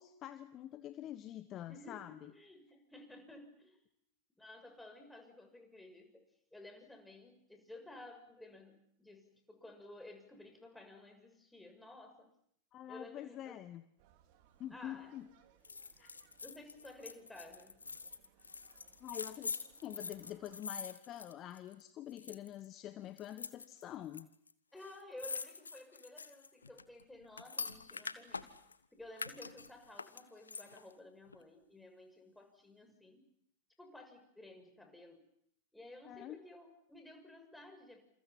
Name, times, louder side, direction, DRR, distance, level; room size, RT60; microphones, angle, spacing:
voice 1, 0.0-2.3 12.7-13.8 14.6-15.3 16.0-16.1 19.0-24.3 36.1-36.4, left 12 dB, 30° left, 11 dB, 1.3 m, -46 dB
voice 2, 1.7-3.8 4.4-6.2 6.5-12.3 12.9-13.6 14.7-15.1 16.4-17.8 24.7-28.5 28.9-33.3 33.8-35.3 35.7-38.0, left 2 dB, 5° left, 4 dB, 6.5 m, -54 dB
sound 1, 14.0-20.6, right 11 dB, 45° right, 3.4 m, -68 dB
sound 2, 15.6-21.8 22.1-22.6 23.2-24.2 24.5-24.6 24.8-28.8 29.1-30.9 31.3-31.4, left 4 dB, 75° left, 1.4 m, -45 dB
29.0 x 28.0 x 6.0 m, 0.70 s
figure-of-eight pair, 90°, 0 cm